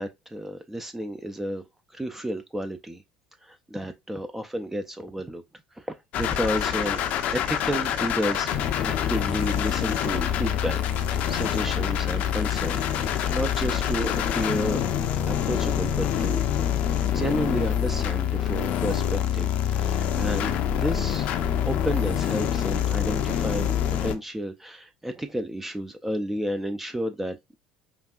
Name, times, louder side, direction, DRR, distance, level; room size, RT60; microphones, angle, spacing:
voice 1, 0.0-1.6 1.9-3.0 3.4-5.4 5.8-7.0 7.3-14.8 15.3-16.4 17.1-20.5 20.8-21.4 21.7-27.6, right 1 dB, 10° right, 0.5 m, -31 dB
sound 1, 6.1-24.2, left 9 dB, 55° left, 0.5 m, -26 dB
5.1 x 2.4 x 2.4 m
hypercardioid pair, 65°, 3 cm